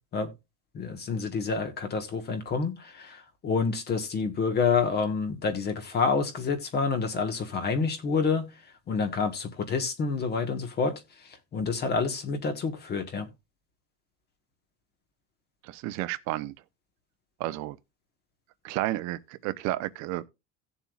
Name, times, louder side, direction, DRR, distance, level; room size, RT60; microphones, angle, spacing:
voice 1, 0.7-8.5 8.9-13.3, left 5 dB, 35° left, 1.4 m, -28 dB
voice 2, 15.6-16.5 17.4-17.8 18.6-20.3, right 16 dB, 65° right, 0.8 m, -31 dB
17.0 x 7.2 x 2.4 m
cardioid pair, 145°, 30 cm